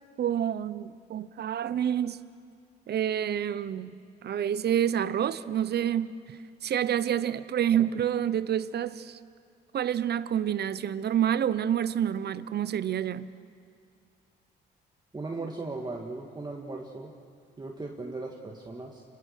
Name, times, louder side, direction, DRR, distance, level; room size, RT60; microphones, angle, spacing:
voice 1, 0.2-2.2 2.9-6.1 6.6-9.2 9.7-13.3, right 10 dB, 55° right, 15 dB, 0.8 m, -28 dB
voice 2, 15.1-17.1 17.6-19.0, right 3 dB, 20° right, 0 dB, 1.9 m, -37 dB
28.5 x 23.0 x 6.6 m, 2.3 s
cardioid pair, 90°, 20 cm